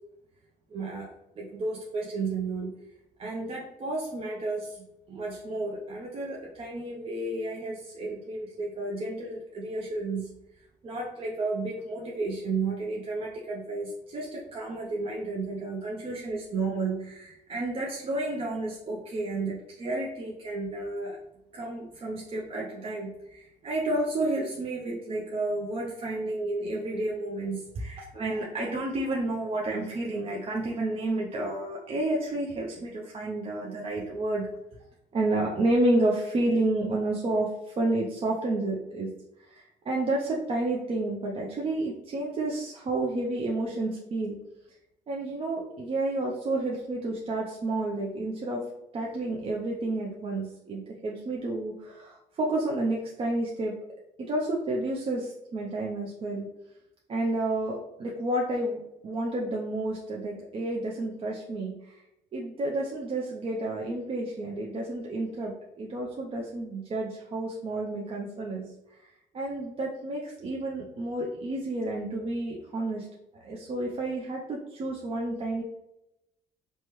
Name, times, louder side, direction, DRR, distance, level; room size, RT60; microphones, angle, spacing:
voice 1, 0.7-1.1 1.4-2.7 3.2-10.3 10.8-21.2 21.5-34.5 35.1-39.1 39.4-44.4 45.1-48.6 48.9-53.8 54.2-56.5 57.1-62.0 62.3-73.1 73.3-75.6, right 2 dB, 35° right, -2 dB, 0.5 m, -31 dB
3.2 x 2.1 x 2.9 m, 0.87 s
cardioid pair, 110°, 17 cm